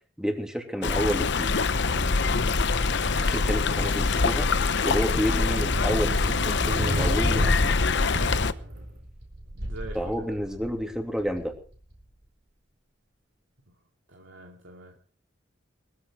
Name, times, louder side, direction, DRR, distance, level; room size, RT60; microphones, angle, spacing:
voice 1, 0.2-1.5 3.3-4.5 4.8-7.8 9.9-11.5, equal, 5° right, 4 dB, 2.9 m, -30 dB
Stream, 0.8-8.5, left 4 dB, 65° left, 0.9 m, -24 dB
sound 1, 1.8-12.0, right 1 dB, 60° right, 4.3 m, -34 dB
voice 2, 2.9-3.9 9.5-10.6 14.1-15.0, right 2 dB, 75° right, 1 dB, 2.6 m, -44 dB
20.0 x 14.5 x 4.7 m, 0.41 s
head